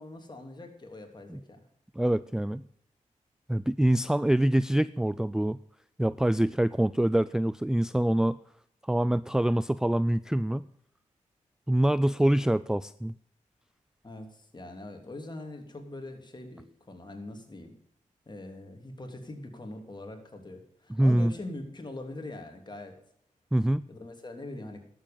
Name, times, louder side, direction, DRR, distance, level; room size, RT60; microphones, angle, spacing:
voice 1, 0.0-1.6 14.0-17.7 18.3-23.0 23.9-24.8, left 2 dB, 35° left, 4 dB, 3.1 m, -42 dB
voice 2, 2.0-2.7 3.5-5.6 6.0-8.4 8.9-10.7 11.7-13.1 20.9-21.3 23.5-23.9, right 1 dB, 5° right, 16 dB, 0.3 m, -25 dB
11.5 x 7.8 x 6.9 m, 0.69 s
cardioid pair, 55°, 14 cm